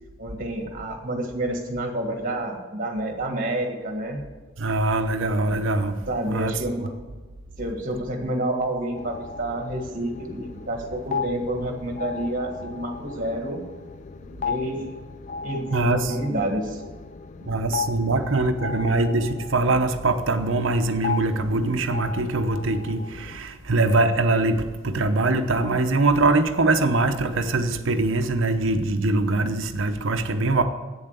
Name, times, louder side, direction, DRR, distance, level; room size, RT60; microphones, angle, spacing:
voice 1, 0.2-4.2 6.1-6.9 7.6-13.6 14.4-14.9 15.4-16.8, right 1 dB, 40° right, 3 dB, 1.7 m, -29 dB
voice 2, 4.6-6.0 6.3-6.5 15.7-16.2 17.4-30.6, right 2 dB, 65° right, 8 dB, 0.8 m, -23 dB
sound 1, 8.9-23.4, left 5 dB, 35° left, 0.3 m, -36 dB
8.6 x 7.3 x 8.2 m, 1.3 s
head